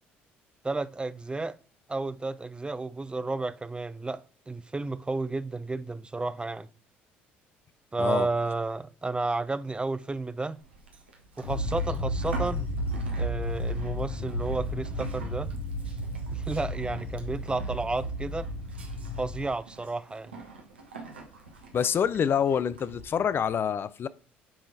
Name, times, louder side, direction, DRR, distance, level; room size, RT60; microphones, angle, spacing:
voice 1, 0.6-1.6 1.9-6.7 7.9-10.6 11.4-12.7 13.2-15.5 16.3-18.5 19.2-20.3, right 3 dB, 15° right, 0.5 m, -32 dB
Livestock farm animals working animals, 10.6-23.0, right 2 dB, 90° right, 1.2 m, -46 dB
sound 1, 11.4-19.5, left 1 dB, 80° left, 2.1 m, -33 dB
voice 2, 21.7-24.1, left 8 dB, 40° left, 0.4 m, -26 dB
8.9 x 3.7 x 4.0 m
hypercardioid pair, 55°, 6 cm